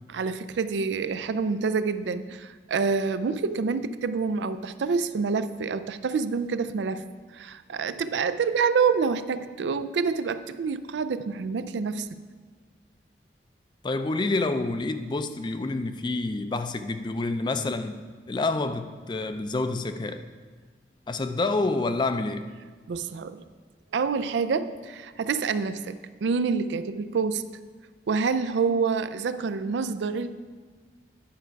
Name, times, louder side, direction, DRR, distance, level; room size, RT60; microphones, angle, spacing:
voice 1, 0.1-7.0 7.3-12.1 22.9-23.4 23.9-27.5 28.1-30.3, right 5 dB, 80° right, 0.4 m, -27 dB
voice 2, 13.8-18.0 18.3-20.2 21.1-22.5, left 3 dB, 25° left, 0.4 m, -28 dB
10.5 x 5.7 x 4.6 m
head